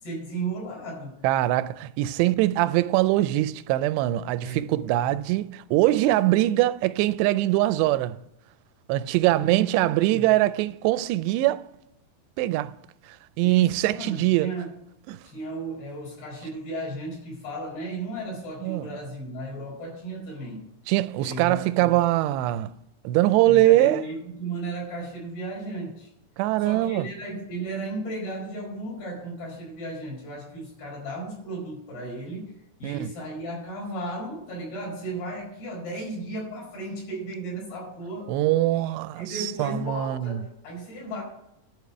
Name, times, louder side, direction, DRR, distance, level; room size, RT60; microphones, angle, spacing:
voice 1, 0.0-1.2 4.4-4.6 9.3-10.3 13.4-14.7 15.2-20.6 21.2-22.0 23.5-26.1 26.6-32.5 32.8-38.3 39.2-41.2, right 2 dB, 65° left, 6.6 m, -35 dB
voice 2, 1.2-8.2 8.9-11.6 12.4-12.7 13.4-14.5 15.1-15.2 18.6-18.9 20.9-22.7 23.0-24.0 26.4-27.1 32.8-33.1 38.3-40.4, right 15 dB, 90° right, 2.7 m, -22 dB
11.5 x 5.0 x 8.2 m
omnidirectional pair, 4.8 m